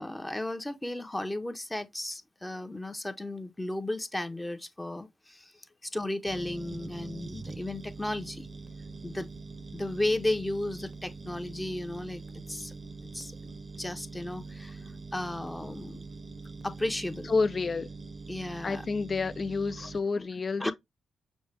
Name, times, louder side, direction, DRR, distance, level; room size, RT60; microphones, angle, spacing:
voice 1, 0.0-5.5 5.8-8.5 9.0-9.3 9.7-12.2 12.5-12.7 13.1-13.3 13.8-14.8 15.1-16.0 16.6-17.3 18.3-18.8 19.8-19.9 20.2-20.3 20.6-20.7, left 1 dB, 15° left, 0.7 m, -34 dB
sound 1, 6.3-20.0, right 3 dB, 40° right, 0.6 m, -43 dB
voice 2, 17.3-17.9 18.6-20.7, left 4 dB, 45° left, 0.3 m, -29 dB
6.1 x 2.2 x 3.3 m
supercardioid pair, 55°, 0 cm